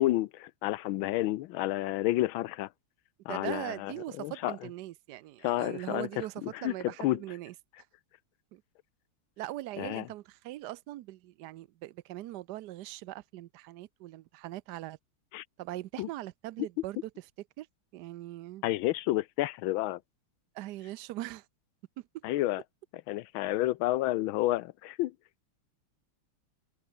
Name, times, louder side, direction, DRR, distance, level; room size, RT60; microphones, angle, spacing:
voice 1, 0.0-2.7 3.3-4.5 5.4-7.2 9.8-10.0 15.3-15.4 16.0-16.1 18.6-20.0 22.2-22.6 23.1-25.1, left 16 dB, 80° left, 1.4 m, -30 dB
voice 2, 3.3-7.5 8.5-8.6 9.4-15.0 15.6-17.1 17.6-17.7 17.9-18.6 20.5-21.4 22.0-22.2, right 15 dB, 70° right, 1.0 m, -41 dB
omnidirectional pair, 2.2 m